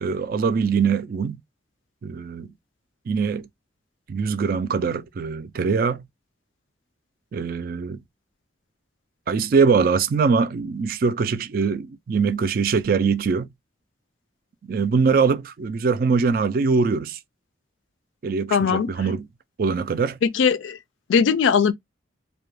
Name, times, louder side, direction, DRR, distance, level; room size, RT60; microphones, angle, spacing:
voice 1, 0.0-1.4 2.0-2.5 3.1-3.5 4.1-6.0 7.3-8.0 9.3-13.5 14.7-17.2 18.2-19.3 19.6-20.2, right 5 dB, 50° right, 0.3 m, -22 dB
voice 2, 18.5-18.9 20.2-20.8 21.1-21.7, left 6 dB, 85° left, 0.4 m, -19 dB
2.2 x 2.2 x 3.1 m
head